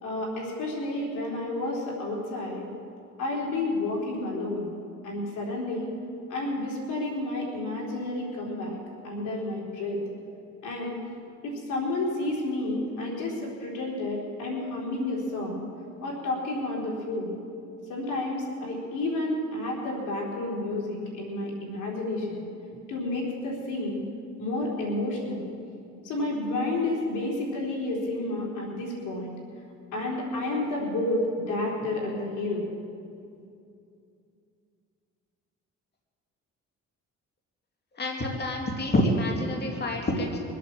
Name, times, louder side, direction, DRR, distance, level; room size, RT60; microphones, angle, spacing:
voice 1, 0.0-2.7 3.2-4.7 5.0-5.9 6.3-8.8 9.0-10.0 10.6-11.0 11.4-15.7 16.0-17.4 17.9-22.4 22.9-24.0 24.4-25.5 26.0-29.3 29.9-32.7, left 2 dB, 85° left, -2 dB, 3.8 m, -30 dB
voice 2, 37.9-40.4, left 1 dB, 35° left, 0 dB, 2.4 m, -27 dB
23.0 x 8.4 x 7.4 m, 2.5 s
cardioid pair, 90°, 30 cm